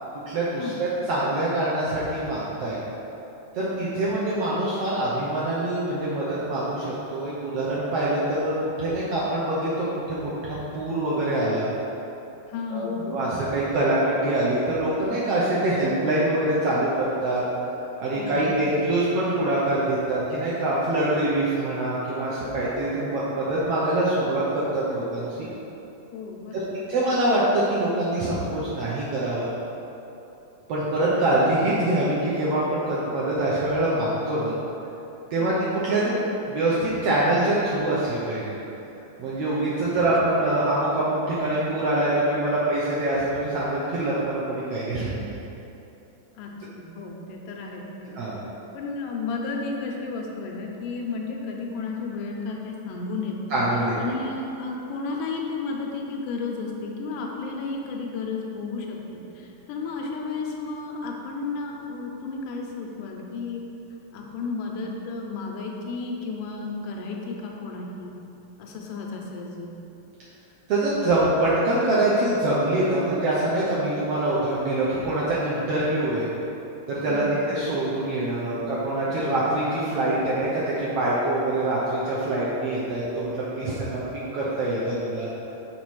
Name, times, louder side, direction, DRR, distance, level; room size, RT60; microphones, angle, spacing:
voice 1, 0.3-2.8 3.5-8.5 8.8-11.6 12.7-17.4 18.0-25.5 26.5-26.6 26.9-29.5 30.7-34.6 35.3-38.6 39.2-45.3 48.1-48.4 53.5-53.9 70.7-76.3 76.9-84.0 84.3-85.3, right 1 dB, 75° right, -8 dB, 1.5 m, -24 dB
voice 2, 12.5-13.0 18.2-18.6 26.1-26.9 35.4-35.6 39.9-40.0 46.4-48.1 48.7-53.6 54.0-63.6 64.1-68.1 68.6-69.7 77.1-77.3, left 4 dB, 90° left, 0 dB, 2.3 m, -33 dB
5.9 x 4.1 x 4.7 m, 2.9 s
omnidirectional pair, 3.7 m